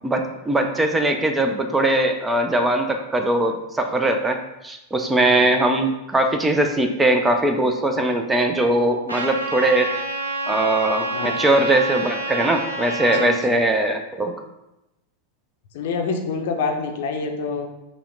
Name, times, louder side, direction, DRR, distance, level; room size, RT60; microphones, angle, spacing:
voice 1, 0.0-9.9 10.5-14.3, right 1 dB, 10° right, 5 dB, 0.4 m, -20 dB
Trumpet, 9.1-13.3, right 2 dB, 80° right, 0.7 m, -28 dB
voice 2, 12.9-13.6 15.7-17.7, left 4 dB, 55° left, 4 dB, 0.5 m, -27 dB
5.6 x 2.1 x 3.7 m, 0.93 s
figure-of-eight pair, 90°, 0 cm